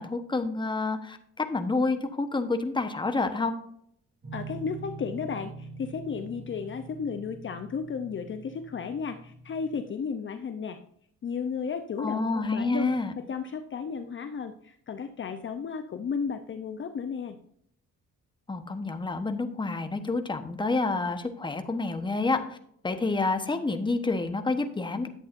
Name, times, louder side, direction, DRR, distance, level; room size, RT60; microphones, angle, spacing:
voice 1, 0.0-3.5 12.0-13.1 18.5-22.6 22.8-25.1, left 3 dB, 15° left, 7 dB, 1.1 m, -28 dB
sound 1, 4.2-9.8, right 3 dB, 30° right, 2.9 m, -44 dB
voice 2, 4.3-10.8 11.2-12.9 13.2-17.4, left 6 dB, 40° left, 8 dB, 0.7 m, -34 dB
11.0 x 8.3 x 2.6 m, 0.69 s
cardioid pair, 90°, 30 cm